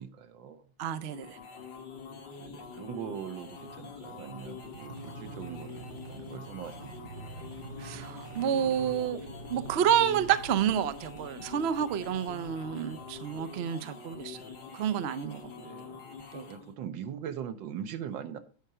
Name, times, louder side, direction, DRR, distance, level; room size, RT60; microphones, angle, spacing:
voice 1, 0.0-0.6 2.4-7.5 13.8-14.0 15.5-16.0 16.5-18.4, right 9 dB, 90° right, 10 dB, 1.6 m, -41 dB
voice 2, 0.8-1.4 7.8-9.2 9.5-14.4 14.7-15.4 16.3-16.4, right 9 dB, 70° right, 12 dB, 0.6 m, -29 dB
sound 1, 0.9-16.7, left 5 dB, 70° left, 2.2 m, -45 dB
sound 2, 3.4-13.5, right 4 dB, 45° right, 1.0 m, -47 dB
9.4 x 4.8 x 5.5 m, 0.38 s
omnidirectional pair, 2.0 m